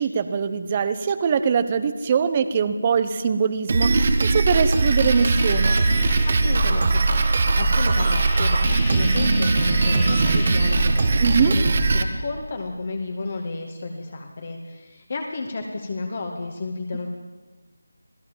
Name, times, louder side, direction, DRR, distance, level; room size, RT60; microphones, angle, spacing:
voice 1, 0.0-5.8 11.2-11.6, right 6 dB, 25° right, 12 dB, 1.1 m, -22 dB
Drum kit, 3.7-12.0, right 3 dB, 40° right, 1.7 m, -20 dB
sound 1, 4.6-11.4, left 4 dB, 15° left, 2.1 m, -38 dB
voice 2, 6.0-11.6 11.9-17.1, left 3 dB, 40° left, 2 dB, 2.2 m, -32 dB
27.0 x 16.5 x 7.6 m, 1.3 s
figure-of-eight pair, 170°, 0 cm